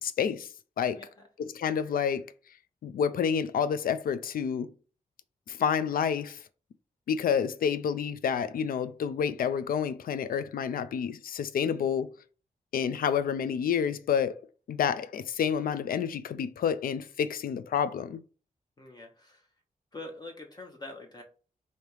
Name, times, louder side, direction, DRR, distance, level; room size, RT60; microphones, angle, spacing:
voice 1, 0.0-0.5 0.8-1.1 1.4-2.2 2.8-4.7 5.5-6.4 7.1-12.1 12.7-14.4 14.7-18.2, left 7 dB, 80° left, 0.4 m, -29 dB
voice 2, 18.8-19.4 19.9-21.2, left 2 dB, 30° left, 0.7 m, -44 dB
3.3 x 2.8 x 4.6 m
wide cardioid pair, 135°, 15 cm